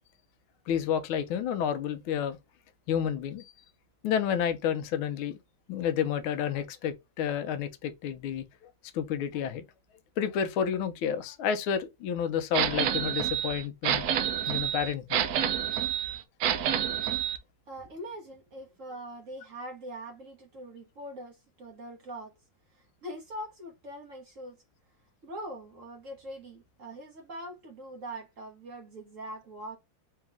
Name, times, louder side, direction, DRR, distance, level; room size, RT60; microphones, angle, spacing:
voice 1, 0.7-2.4 2.9-3.5 4.0-5.4 5.7-9.6 10.2-14.0 14.5-15.2, left 8 dB, 90° left, 1.5 m, -30 dB
sound 1, 12.5-17.4, right 10 dB, 80° right, 0.8 m, -28 dB
voice 2, 17.7-22.3 23.0-24.6 25.2-29.8, right 1 dB, 50° right, 1.1 m, -42 dB
4.0 x 2.8 x 3.5 m
omnidirectional pair, 2.2 m